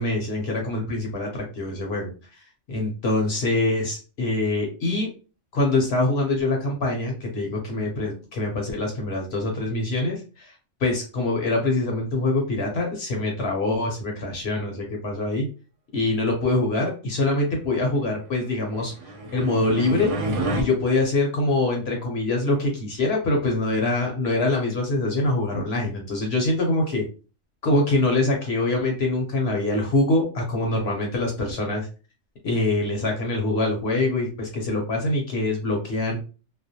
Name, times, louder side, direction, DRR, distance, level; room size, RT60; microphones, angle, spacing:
voice 1, 0.0-2.1 2.7-5.1 5.5-10.5 10.8-15.5 15.9-18.9 19.3-20.1 20.5-27.0 27.6-31.9 32.4-36.2, left 2 dB, 60° left, 0 dB, 0.8 m, -24 dB
sound 1, 18.7-20.6, right 2 dB, 70° right, 0.9 m, -29 dB
2.3 x 2.0 x 2.7 m, 0.34 s
omnidirectional pair, 1.3 m